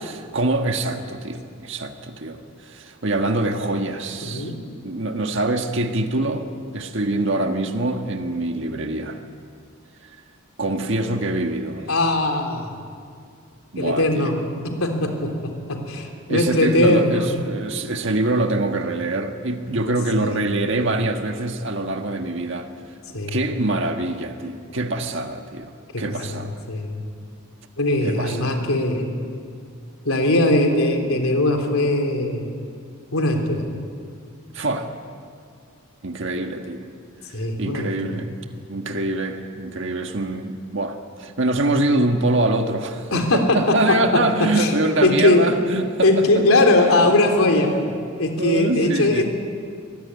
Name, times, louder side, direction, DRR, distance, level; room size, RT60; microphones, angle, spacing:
voice 1, 0.0-4.5 4.8-6.5 6.7-9.2 10.1-10.2 10.6-11.9 13.7-14.4 16.3-22.7 23.1-25.7 26.0-26.6 28.0-28.7 34.5-34.9 36.0-36.8 37.6-38.3 38.7-46.3 46.8-47.0 47.6-47.8 48.4-49.2, right 2 dB, 60° right, 4 dB, 1.7 m, -24 dB
voice 2, 4.2-4.6 11.9-12.7 13.8-14.4 14.6-17.3 20.2-20.4 23.1-23.4 25.9-26.0 26.3-27.0 27.8-29.1 30.1-32.5 33.1-33.6 37.3-38.2 43.1-44.0 44.6-44.7 45.0-45.4 46.0-47.7 48.2-49.2, left 2 dB, 85° left, 3 dB, 3.5 m, -20 dB
24.0 x 20.0 x 9.7 m, 2.2 s
head